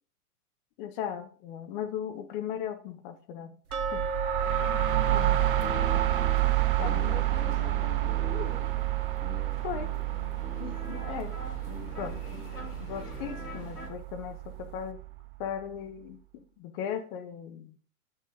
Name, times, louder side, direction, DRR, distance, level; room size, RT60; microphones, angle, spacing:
voice 1, 0.8-3.5 3.9-4.0 4.6-4.8 5.1-6.0 6.8-7.2 9.6-9.9 11.0-11.3 12.0-12.2 12.8-15.0 15.4-16.2 16.6-17.8, left 9 dB, 35° left, 1.3 m, -37 dB
sound 1, 3.7-15.4, right 17 dB, 40° right, 0.5 m, -29 dB
sound 2, 3.7-10.6 10.8-10.9 11.5-11.6 12.1-12.2, right 3 dB, 70° right, 0.9 m, -36 dB
sound 3, 5.1-13.9, left 2 dB, 80° left, 2.1 m, -44 dB
voice 2, 6.8-8.7 10.6-11.1, left 7 dB, 50° left, 0.9 m, -43 dB
9.2 x 6.2 x 3.5 m
figure-of-eight pair, 100°, 45 cm